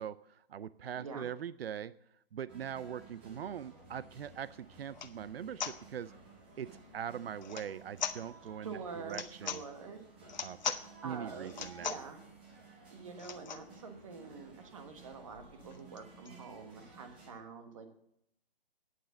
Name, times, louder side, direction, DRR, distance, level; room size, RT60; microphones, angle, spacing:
voice 1, 0.0-1.9 2.3-6.1 6.6-9.6 10.4-10.8 11.0-11.9, right 9 dB, 90° right, 17 dB, 0.5 m, -42 dB
voice 2, 0.9-1.3 8.6-10.0 10.7-12.2 12.9-17.9, right 5 dB, 35° right, 6 dB, 1.4 m, -46 dB
sound 1, 2.5-17.3, right 3 dB, 10° right, 0.7 m, -56 dB
sound 2, 4.3-4.4 4.9-5.2 5.6-5.8 7.4-7.7 8.0-8.2 9.1-9.6 10.3-10.8 11.5-12.1 13.2-13.7 14.2-14.3 14.5-14.6 14.9-16.4, left 7 dB, 50° left, 0.8 m, -40 dB
9.3 x 7.6 x 6.9 m, 0.75 s
hypercardioid pair, 170°, 29 cm